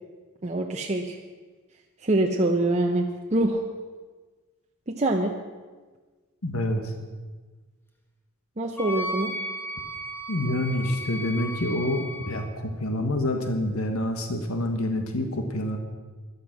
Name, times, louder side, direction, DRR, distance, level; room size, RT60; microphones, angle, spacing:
voice 1, 0.4-1.2 2.0-3.6 4.9-5.3 8.6-9.3, right 2 dB, 30° right, 1 dB, 0.8 m, -25 dB
voice 2, 6.4-6.9 10.3-15.8, left 1 dB, 80° left, 5 dB, 1.5 m, -27 dB
Wind instrument woodwind instrument, 8.8-12.4, equal, 10° left, 1.5 m, -35 dB
14.0 x 11.5 x 6.0 m, 1.4 s
head